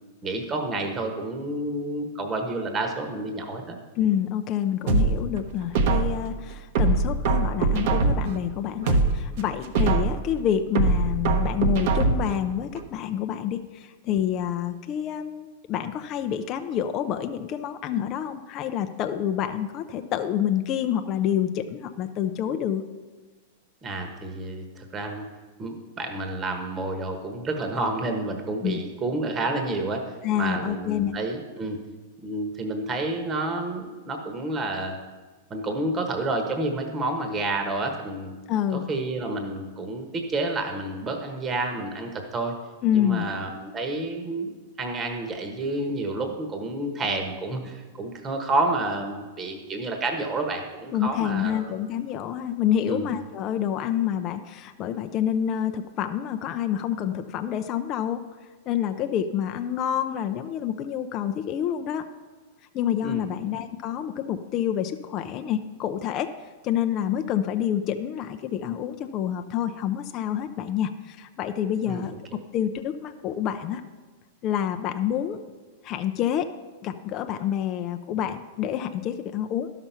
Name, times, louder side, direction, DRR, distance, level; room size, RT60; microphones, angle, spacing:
voice 1, 0.2-3.8 23.8-25.3 25.6-30.0 30.3-31.8 32.2-35.0 35.5-38.3 38.7-42.5 42.9-44.5 44.8-51.8 52.9-53.1 63.0-63.2 71.8-72.1 72.3-72.4, right 2 dB, 25° right, 4 dB, 1.2 m, -29 dB
voice 2, 4.0-22.8 28.6-28.8 30.2-31.1 38.5-38.8 42.8-43.3 50.9-58.3 58.7-62.1 62.7-72.1 72.5-73.8 74.4-75.4 75.8-76.5 76.8-79.7, left 10 dB, 40° left, 7 dB, 0.5 m, -28 dB
sound 1, 4.9-6.3 6.8-8.4 8.8-10.3 10.8-12.4 12.8-12.9, right 3 dB, 60° right, 1.0 m, -22 dB
12.0 x 5.9 x 5.6 m, 1.3 s
hypercardioid pair, 125°, 0 cm